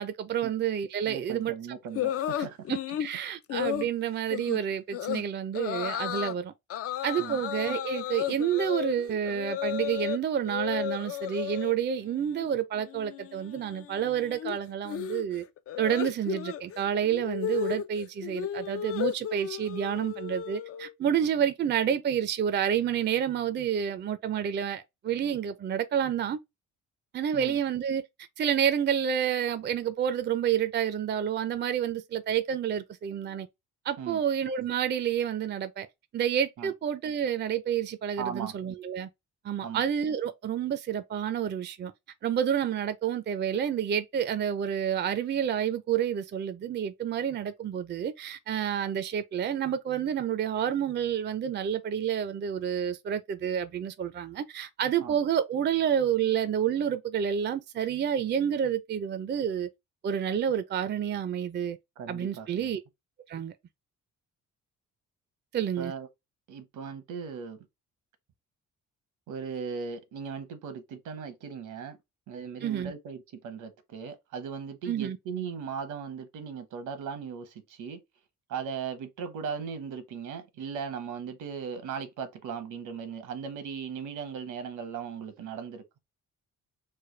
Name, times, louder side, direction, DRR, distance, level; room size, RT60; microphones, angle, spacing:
voice 1, 0.0-1.5 3.0-6.5 7.0-15.4 15.8-26.4 27.1-28.0 28.4-33.5 33.9-35.9 36.1-39.1 39.4-41.9 42.2-59.7 60.0-61.8 62.1-62.8 63.3-63.5 65.5-65.9 72.6-72.9 74.9-75.2, right 9 dB, 35° right, 0.4 m, -29 dB
voice 2, 1.1-2.7 7.2-7.4 27.3-27.6 34.0-34.2 36.6-36.7 38.2-38.5 39.6-39.8 55.0-55.2 56.2-56.3 62.0-62.7 65.8-66.1 66.5-67.7 69.3-72.0 72.3-78.0 78.5-85.8, right 6 dB, 80° right, 0.9 m, -38 dB
sound 1, 1.9-3.1 3.5-3.9 4.3-4.6 4.9-5.2 5.5-6.3 6.7-10.2 10.4-11.7 12.1-12.5 12.7-20.9, left 11 dB, 50° left, 0.4 m, -34 dB
3.3 x 2.2 x 3.2 m
cardioid pair, 90°, 30 cm